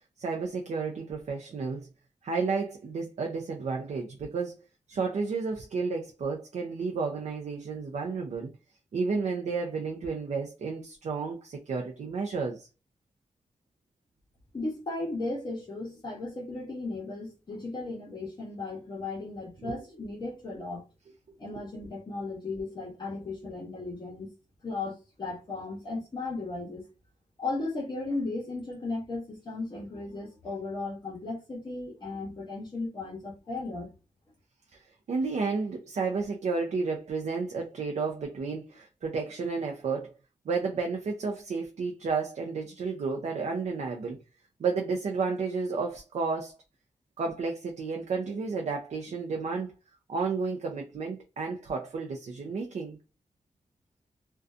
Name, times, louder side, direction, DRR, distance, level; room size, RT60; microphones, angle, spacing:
voice 1, 0.2-1.9 2.2-4.5 4.9-8.5 8.9-12.7 19.6-19.8 21.3-21.4 34.7-34.8 35.1-40.1 40.5-44.2 44.6-46.5 47.2-49.7 50.1-53.0, right 4 dB, 65° right, 0.5 m, -32 dB
voice 2, 14.5-20.9 21.4-24.3 24.6-26.8 27.4-33.9, left 3 dB, 35° left, 0.8 m, -36 dB
2.5 x 2.2 x 2.3 m
wide cardioid pair, 165°, 12 cm